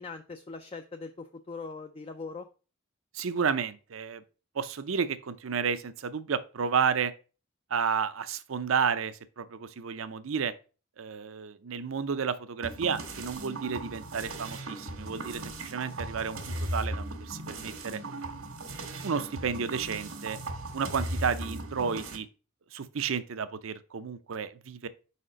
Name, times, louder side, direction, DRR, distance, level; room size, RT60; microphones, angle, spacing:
voice 1, 0.0-2.5, left 4 dB, 25° left, 0.3 m, -41 dB
voice 2, 3.1-4.2 4.5-7.1 7.7-10.5 11.0-18.0 19.0-20.4 20.7-22.3 22.7-24.9, right 6 dB, 70° right, 0.5 m, -31 dB
sound 1, 12.6-22.2, right 1 dB, 85° right, 1.5 m, -38 dB
4.9 x 4.2 x 5.0 m
head